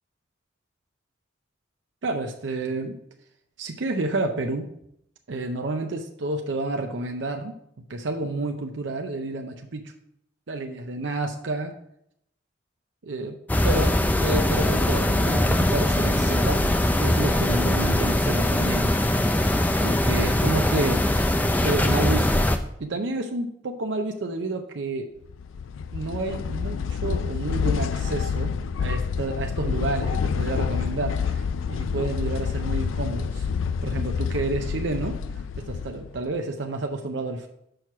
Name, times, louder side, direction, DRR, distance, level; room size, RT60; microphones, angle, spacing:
voice 1, 2.0-3.0 3.6-4.7 5.3-7.5 7.9-9.9 10.5-11.7 13.0-13.4 13.6-19.1 19.8-21.3 21.6-22.5 22.8-25.1 25.9-33.5 33.8-35.2 35.6-37.5, right 2 dB, 70° right, 4 dB, 0.6 m, -30 dB
sound 1, 13.5-22.6, left 1 dB, 10° left, 0.3 m, -22 dB
sound 2, 25.3-36.3, left 6 dB, 90° left, 0.4 m, -28 dB
6.3 x 4.6 x 5.7 m, 0.75 s
head